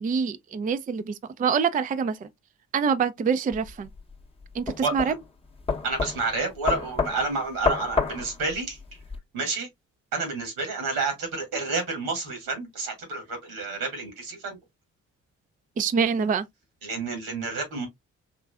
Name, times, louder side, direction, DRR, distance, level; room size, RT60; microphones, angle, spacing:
voice 1, 0.0-2.3 2.7-3.9 4.5-5.1 15.8-16.4, right 6 dB, 25° right, 0.4 m, -25 dB
sound 1, 3.5-9.2, left 5 dB, 15° left, 0.8 m, -30 dB
voice 2, 4.8-5.1 5.8-8.8 9.3-9.7 10.1-14.6 16.8-17.9, right 3 dB, 80° right, 1.9 m, -30 dB
3.7 x 3.0 x 2.3 m
hypercardioid pair, 45°, 36 cm